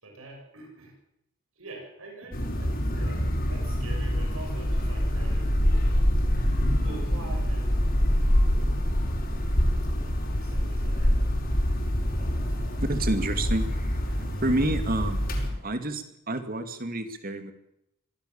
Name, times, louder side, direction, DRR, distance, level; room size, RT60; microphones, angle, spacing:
voice 1, 0.0-1.0 1.6-5.8 6.8-9.3 9.9-11.4 12.0-12.8 14.4-14.7, right 2 dB, 85° right, 1 dB, 7.0 m, -46 dB
sound 1, 2.3-15.5, equal, 45° left, 5.2 m, -25 dB
voice 2, 12.8-13.7 14.4-15.2 15.6-17.5, right 1 dB, 45° right, 8 dB, 2.5 m, -28 dB
25.0 x 17.0 x 7.3 m, 0.80 s
head